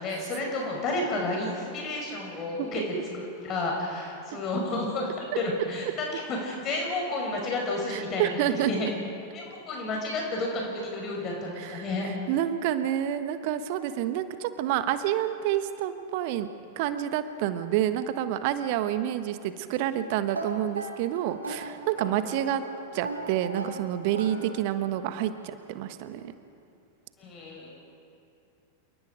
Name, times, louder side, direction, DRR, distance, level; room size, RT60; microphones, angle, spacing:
voice 1, 0.0-5.1 5.4-8.9 9.3-12.1 27.2-27.8, left 2 dB, 30° left, 0 dB, 5.1 m, -31 dB
voice 2, 7.9-8.9 11.6-16.5 16.8-22.6 22.9-26.3, right 11 dB, 50° right, 10 dB, 1.3 m, -28 dB
sound 1, 20.3-25.0, right 2 dB, 75° right, 2.7 m, -38 dB
28.5 x 19.5 x 5.1 m, 2.6 s
figure-of-eight pair, 90°, 0 cm